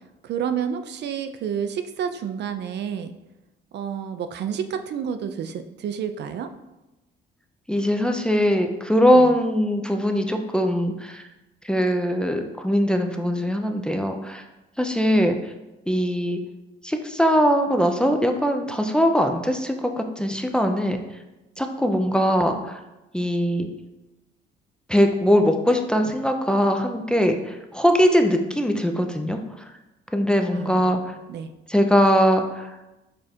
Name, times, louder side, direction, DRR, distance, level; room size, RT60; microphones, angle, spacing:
voice 1, 0.2-3.1 3.7-6.5 9.1-9.3 30.5-31.0 31.3-31.5, right 8 dB, 60° right, 9 dB, 0.4 m, -29 dB
voice 2, 7.7-11.2 11.6-14.4 14.8-15.5 15.9-16.4 16.8-21.0 21.6-22.8 23.1-23.7 24.9-29.7 30.1-31.2 31.7-32.8, equal, 5° left, 4 dB, 0.4 m, -21 dB
4.9 x 2.4 x 4.3 m, 0.99 s
cardioid pair, 90°, 20 cm